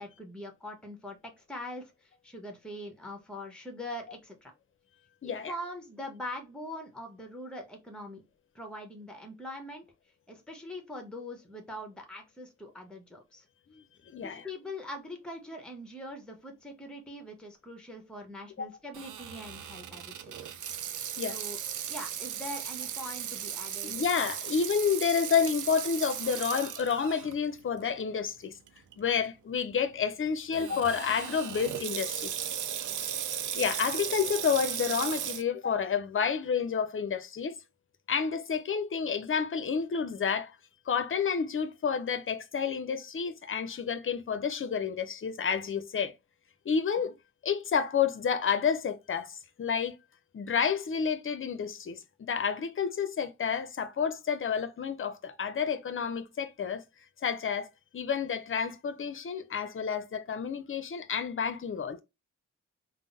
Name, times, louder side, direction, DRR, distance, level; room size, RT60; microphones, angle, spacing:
voice 1, 0.0-4.5 5.2-8.2 8.5-9.9 10.3-13.4 14.2-20.3 21.2-21.6 21.9-23.9 32.8-33.1 47.0-47.1, left 1 dB, 5° left, 0.9 m, -42 dB
voice 2, 5.2-5.5 13.8-13.9 14.1-14.4 18.6-18.7 21.2-21.4 23.8-28.5 29.0-32.3 33.6-37.6 38.1-40.6 40.9-46.1 46.7-47.1 47.4-49.9 50.3-56.8 57.2-62.0, left 6 dB, 40° left, 0.5 m, -30 dB
Water tap faucet / Sink (filling or washing), 18.9-27.3 27.8-27.9 28.7-28.9 30.5-35.4, right 9 dB, 70° right, 0.5 m, -36 dB
3.5 x 2.0 x 2.6 m
cardioid pair, 45°, 31 cm